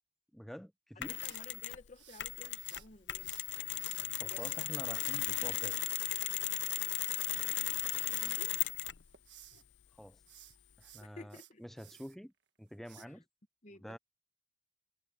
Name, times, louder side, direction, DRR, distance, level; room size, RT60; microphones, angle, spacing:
voice 1, 0.3-1.2 4.2-5.8 10.0-10.2 10.8-12.3 12.6-13.2 13.8-14.0, equal, ahead, 0.4 m, -47 dB
Mechanisms, 1.0-1.8 2.2-9.1, left 15 dB, 85° left, 0.6 m, -36 dB
voice 2, 1.2-3.3 4.2-4.7 7.7-8.6 11.0-11.6 13.0-13.2 13.6-14.0, left 3 dB, 40° left, 1.1 m, -54 dB
sound 1, 1.2-2.9 3.2-5.8 6.8-7.8 8.1-8.4 8.9-9.6 10.2-12.2 12.9-13.1, right 13 dB, 80° right, 1.5 m, -57 dB
head